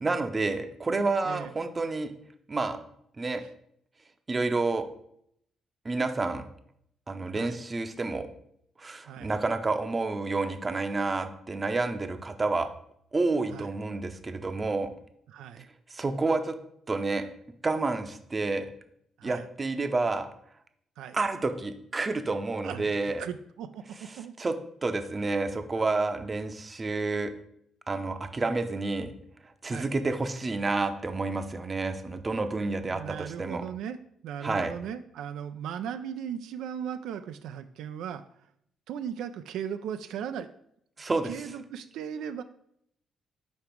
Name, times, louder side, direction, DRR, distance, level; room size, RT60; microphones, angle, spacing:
voice 1, 0.0-2.1 2.5-2.8 3.2-3.4 4.3-4.8 5.8-6.4 7.1-8.3 8.8-12.7 13.1-14.9 15.9-16.6 16.9-17.2 17.6-18.7 19.2-20.3 21.1-23.2 24.1-27.3 27.9-29.1 29.6-33.6 34.4-34.7 41.0-41.3, right 3 dB, 30° right, 8 dB, 0.6 m, -29 dB
voice 2, 15.3-15.7 19.2-19.4 21.0-21.2 22.6-22.9 23.2-24.3 29.7-29.9 32.9-38.2 38.9-40.5 41.2-42.4, right 8 dB, 85° right, 9 dB, 0.3 m, -37 dB
5.2 x 4.7 x 4.5 m, 0.71 s
cardioid pair, 90°, 0 cm